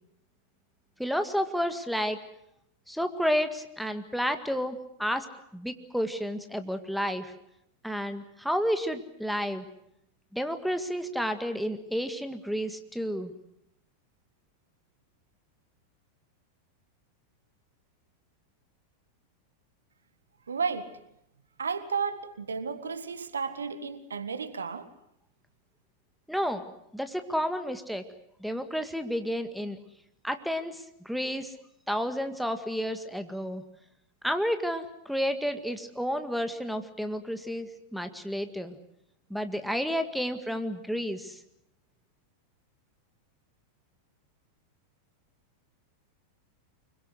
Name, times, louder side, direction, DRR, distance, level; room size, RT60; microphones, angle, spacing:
voice 1, 1.0-2.2 2.9-5.3 5.5-7.3 7.8-9.7 10.3-13.3 26.3-26.6 26.9-28.0 28.4-29.8 30.2-31.5 31.9-33.6 34.2-38.8 39.3-41.4, equal, ahead, 1.9 m, -31 dB
voice 2, 20.5-20.9 21.6-24.9, right 5 dB, 70° right, 1.7 m, -33 dB
25.0 x 23.5 x 8.0 m
figure-of-eight pair, 90°, 0 cm